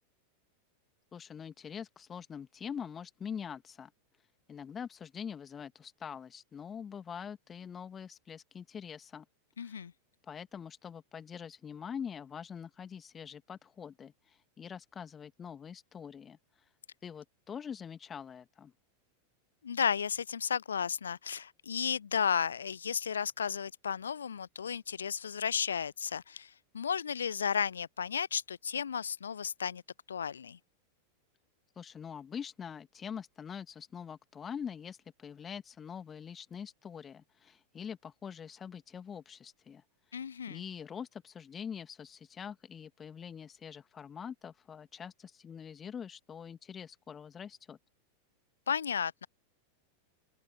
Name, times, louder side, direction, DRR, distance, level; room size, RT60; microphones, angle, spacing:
voice 1, 1.1-3.9 4.5-9.3 9.6-9.8 10.2-16.4 17.0-18.7 31.8-39.8 40.5-47.8, left 7 dB, 20° left, 2.0 m, -44 dB
voice 2, 9.6-9.9 19.6-29.8 30.1-30.6 40.1-40.6 48.7-49.3, left 7 dB, 70° left, 0.4 m, -33 dB
open air
figure-of-eight pair, 90°, 0 cm